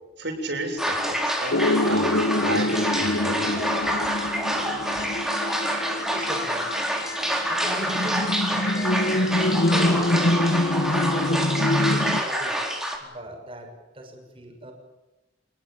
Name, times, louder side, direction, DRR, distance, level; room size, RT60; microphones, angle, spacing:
voice 1, 0.2-1.6 1.8-3.7, right 2 dB, 60° right, 2 dB, 7.4 m, -32 dB
sound 1, 0.8-13.0, equal, ahead, 4.2 m, -27 dB
sound 2, 1.5-12.2, left 1 dB, 60° left, 1.2 m, -25 dB
voice 2, 4.0-5.2 5.9-6.9 7.5-10.5 10.9-12.7 13.0-14.7, right 1 dB, 30° right, 3 dB, 6.6 m, -40 dB
27.5 x 20.0 x 8.9 m, 1.0 s
head